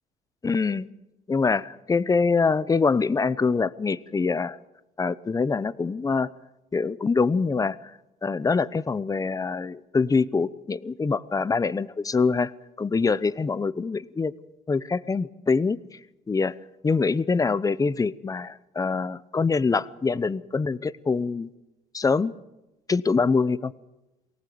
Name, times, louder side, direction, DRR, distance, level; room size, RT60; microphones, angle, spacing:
voice 1, 0.4-0.9 1.3-4.6 5.0-6.3 6.7-7.8 8.2-12.5 12.8-14.3 14.7-15.8 16.3-16.5 16.8-21.5 21.9-22.3 22.9-23.7, left 4 dB, 20° left, 17 dB, 0.8 m, -24 dB
23.5 x 18.0 x 7.9 m, 0.97 s
cardioid pair, 110°, 17 cm